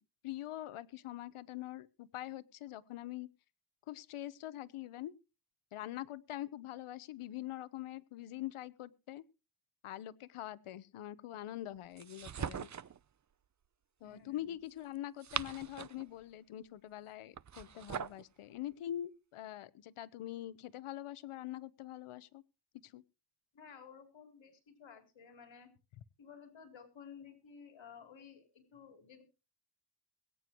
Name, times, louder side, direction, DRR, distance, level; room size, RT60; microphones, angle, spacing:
voice 1, 0.2-3.3 3.9-5.1 5.7-9.2 9.8-12.7 14.0-22.4 22.8-23.0, left 13 dB, 85° left, 16 dB, 1.0 m, -44 dB
sound 1, 12.0-13.0 15.0-16.1 17.3-18.2, right 8 dB, 35° right, 0.7 m, -41 dB
voice 2, 14.0-14.6 23.5-25.7 26.2-29.2, left 6 dB, 65° left, 5 dB, 3.8 m, -55 dB
22.0 x 9.5 x 3.0 m, 0.32 s
cardioid pair, 75°, 49 cm